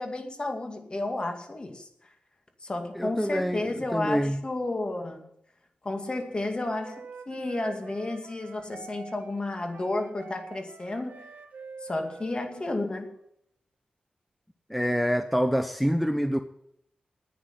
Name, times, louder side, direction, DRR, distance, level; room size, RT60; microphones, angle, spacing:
voice 1, 0.0-1.9 2.6-5.3 5.8-11.3 11.8-13.1, left 2 dB, 35° left, 5 dB, 2.4 m, -32 dB
voice 2, 2.9-4.4 14.7-16.4, equal, ahead, 8 dB, 0.8 m, -26 dB
Wind instrument woodwind instrument, 5.9-13.3, right 5 dB, 70° right, 1.2 m, -46 dB
9.9 x 9.4 x 9.7 m, 0.75 s
cardioid pair, 70°, 3 cm